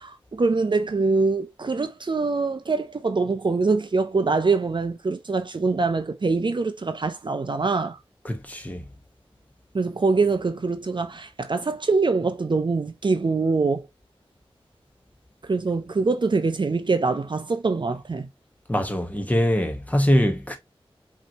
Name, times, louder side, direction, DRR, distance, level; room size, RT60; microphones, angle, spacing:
voice 1, 0.0-8.0 9.7-13.9 15.4-18.3, right 4 dB, 50° right, 0.6 m, -24 dB
voice 2, 8.2-8.8 18.7-20.6, equal, 15° left, 1.2 m, -23 dB
5.3 x 3.1 x 2.8 m
wide cardioid pair, 70°, 10 cm